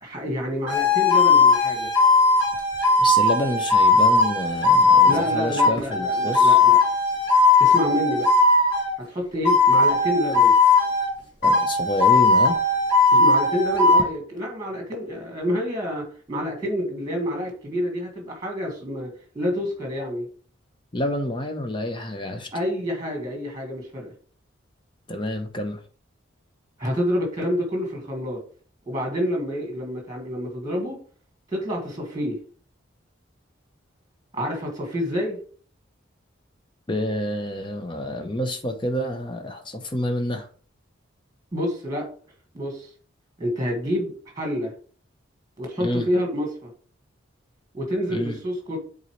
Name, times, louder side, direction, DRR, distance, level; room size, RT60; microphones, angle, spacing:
voice 1, 0.0-1.9 5.1-6.8 7.6-8.3 9.1-10.6 13.1-20.3 22.5-24.1 26.8-28.4 28.9-31.0 31.5-32.4 34.3-35.4 41.5-42.1 42.5-42.9 43.4-44.7 45.6-46.7 47.7-48.8, equal, 20° right, 1 dB, 1.7 m, -28 dB
sound 1, 0.7-9.0 9.4-11.1 11.4-14.1, left 3 dB, 55° left, 2.0 m, -18 dB
voice 2, 3.0-6.6 11.4-12.6 20.9-22.5 25.1-25.8 36.9-40.5 45.8-46.1 48.1-48.4, left 1 dB, 25° left, 5 dB, 0.7 m, -28 dB
8.0 x 4.0 x 3.2 m, 0.44 s
head